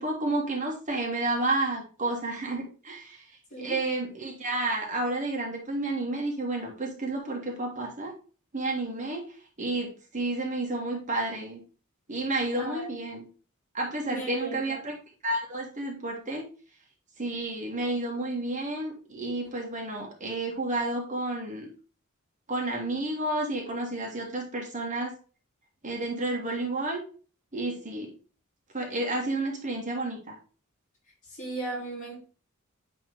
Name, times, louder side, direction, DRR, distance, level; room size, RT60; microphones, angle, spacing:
voice 1, 0.0-3.3 3.6-8.1 8.5-11.6 12.1-13.2 13.7-14.9 15.2-16.5 17.2-21.7 22.5-25.1 25.8-27.0 27.5-28.1 28.7-30.4, right 2 dB, 35° right, 1.6 m, -31 dB
voice 2, 12.5-12.9 14.1-14.6 31.2-32.3, right 2 dB, 35° left, 3.8 m, -36 dB
9.2 x 3.5 x 3.7 m
head